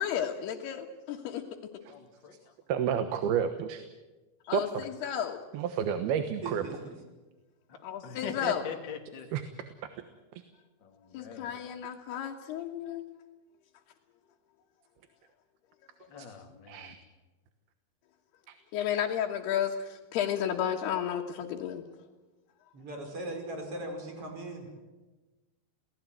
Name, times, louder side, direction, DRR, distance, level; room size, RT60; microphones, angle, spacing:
voice 1, 0.0-1.4 4.5-5.4 7.8-8.7 11.1-13.1 16.0-16.1 18.7-21.9, left 9 dB, 90° left, -1 dB, 3.5 m, -32 dB
voice 2, 1.9-2.4 8.0-9.3 11.2-11.5 16.1-16.9, left 6 dB, 35° left, 3 dB, 2.8 m, -41 dB
voice 3, 2.7-3.8 4.5-4.6 5.1-5.2 5.5-6.6 9.3-9.4 16.2-16.3 16.7-17.0, right 8 dB, 80° right, 9 dB, 3.2 m, -30 dB
voice 4, 6.4-7.0 22.7-24.7, right 2 dB, 35° right, 4 dB, 6.0 m, -39 dB
28.0 x 18.5 x 9.3 m, 1.2 s
omnidirectional pair, 4.5 m